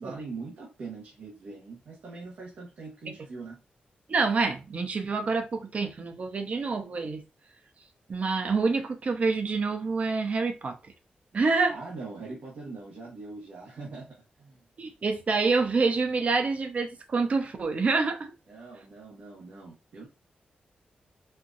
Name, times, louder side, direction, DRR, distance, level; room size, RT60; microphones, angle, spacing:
voice 1, 0.0-3.6 11.7-14.6 18.5-20.1, right 3 dB, 80° right, 1.1 m, -42 dB
voice 2, 4.1-7.2 8.1-10.8 11.3-11.8 14.8-18.3, right 4 dB, 50° right, 0.7 m, -27 dB
4.4 x 2.4 x 2.5 m
wide cardioid pair, 105°, 3 cm